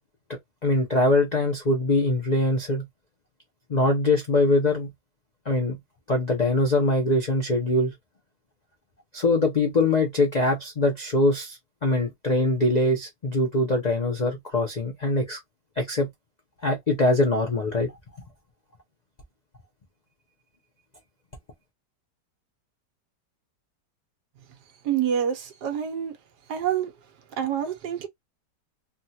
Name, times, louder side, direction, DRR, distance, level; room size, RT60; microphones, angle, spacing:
voice 1, 0.3-2.8 3.7-4.9 5.5-5.8 6.1-7.9 9.1-15.4 15.8-16.1 16.6-17.9, left 2 dB, 65° left, 0.4 m, -23 dB
voice 2, 24.8-26.2 26.5-26.9 27.3-28.1, right 9 dB, 70° right, 1.3 m, -27 dB
3.4 x 2.3 x 2.7 m
omnidirectional pair, 1.9 m